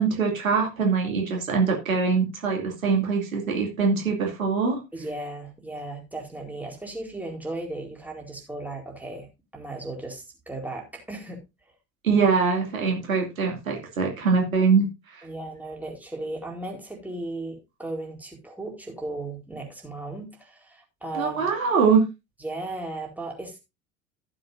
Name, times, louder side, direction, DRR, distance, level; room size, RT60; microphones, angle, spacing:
voice 1, 0.0-4.8 12.0-15.2 21.1-22.0, right 5 dB, 80° right, 1 dB, 2.6 m, -23 dB
voice 2, 4.9-9.3 9.5-11.4 15.2-21.5 22.4-23.6, right 2 dB, 5° right, 0 dB, 4.2 m, -36 dB
15.0 x 7.9 x 2.6 m, 0.24 s
figure-of-eight pair, 65°, 40 cm